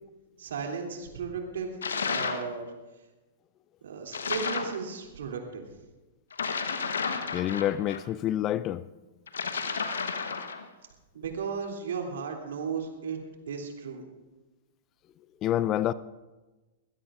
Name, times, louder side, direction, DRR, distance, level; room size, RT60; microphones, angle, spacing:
voice 1, 0.4-1.7 2.1-2.7 3.8-5.6 11.1-13.2 13.5-14.0, right 5 dB, 70° right, 2.9 m, -35 dB
sound 1, 1.8-2.5 4.1-4.8 6.3-8.0 9.3-10.6, left 5 dB, 80° left, 1.1 m, -32 dB
voice 2, 7.3-8.8 15.4-15.9, left 12 dB, 35° left, 0.4 m, -27 dB
22.0 x 16.5 x 2.5 m
hypercardioid pair, 105°, 0 cm